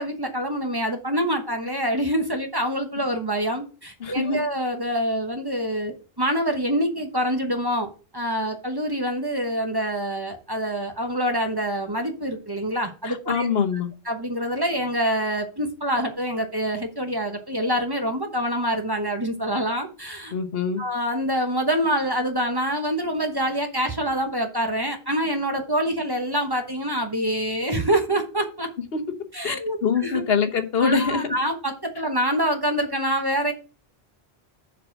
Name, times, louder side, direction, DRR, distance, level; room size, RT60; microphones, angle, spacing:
voice 1, 0.0-7.9 8.1-13.5 14.1-20.3 20.8-28.7 29.3-30.2 30.8-33.5, equal, 25° right, 1.1 m, -26 dB
voice 2, 4.0-4.4 13.0-13.9 20.3-20.8 28.9-29.0 29.4-29.6 29.8-31.3, left 5 dB, 70° left, 1.2 m, -23 dB
6.9 x 4.9 x 6.1 m
omnidirectional pair, 1.0 m